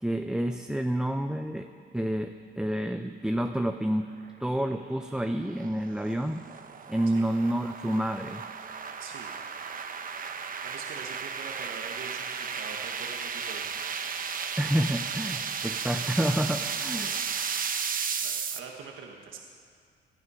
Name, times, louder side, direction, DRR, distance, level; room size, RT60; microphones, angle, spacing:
voice 1, 0.0-1.7 1.9-4.1 4.4-6.4 6.9-8.4 14.6-17.1, right 1 dB, 5° right, 6 dB, 0.6 m, -29 dB
sound 1, 4.7-18.6, right 6 dB, 45° right, 1.0 m, -34 dB
voice 2, 9.0-9.3 10.6-13.7 16.8-17.1 18.2-19.4, right 6 dB, 80° right, 1 dB, 1.4 m, -43 dB
19.5 x 12.0 x 5.6 m, 2.2 s
cardioid pair, 90°, 20 cm